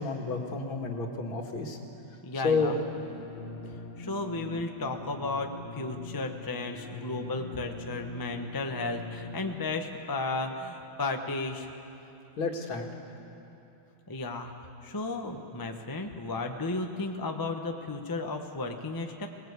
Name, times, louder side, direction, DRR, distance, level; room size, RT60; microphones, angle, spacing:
voice 1, 0.0-1.8 2.3-2.7 12.4-12.8, left 4 dB, 70° left, 2 dB, 2.6 m, -30 dB
voice 2, 2.2-2.8 4.0-11.7 14.1-14.5 14.8-19.3, left 3 dB, 15° left, 4 dB, 0.7 m, -34 dB
sound 1, 2.5-9.6, left 2 dB, 35° left, 1.1 m, -43 dB
23.0 x 19.5 x 8.3 m, 2.9 s
omnidirectional pair, 2.3 m